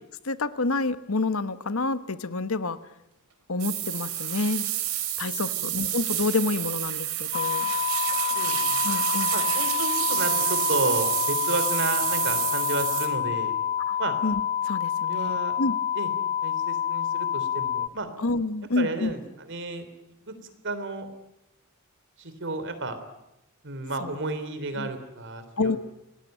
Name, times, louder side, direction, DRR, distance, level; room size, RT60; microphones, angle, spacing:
voice 1, 0.2-2.8 3.5-4.7 5.2-7.7 8.8-9.3 13.9-15.8 18.2-19.1 24.0-24.2 24.8-24.9 25.6-25.8, left 3 dB, 75° left, 13 dB, 1.2 m, -28 dB
sound 1, 3.6-13.1, right 12 dB, 90° right, 3.8 m, -29 dB
voice 2, 5.5-5.9 8.3-8.8 9.3-13.6 14.0-14.1 15.1-15.5 15.9-16.1 16.4-18.1 18.7-19.2 19.5-19.9 20.3-20.4 20.6-21.1 22.2-23.0 23.6-25.8, right 3 dB, 60° right, 10 dB, 3.4 m, -32 dB
sound 2, 7.3-17.9, left 9 dB, 45° left, 1.2 m, -28 dB
26.0 x 19.0 x 9.2 m, 0.89 s
head